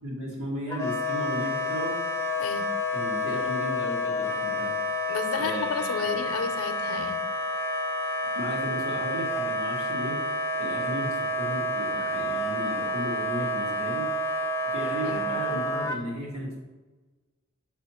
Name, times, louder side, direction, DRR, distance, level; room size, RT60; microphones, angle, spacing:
voice 1, 0.0-2.0 2.9-4.8 5.3-6.2 8.3-10.2 10.6-14.2 14.6-16.6, equal, 75° right, -3 dB, 2.0 m, -35 dB
Wind instrument woodwind instrument, 0.7-16.0, left 1 dB, 15° left, 0.4 m, -29 dB
voice 2, 2.4-2.7 5.1-7.2 15.0-15.2, left 5 dB, 85° left, 9 dB, 0.6 m, -32 dB
5.9 x 3.3 x 5.7 m, 1.2 s
head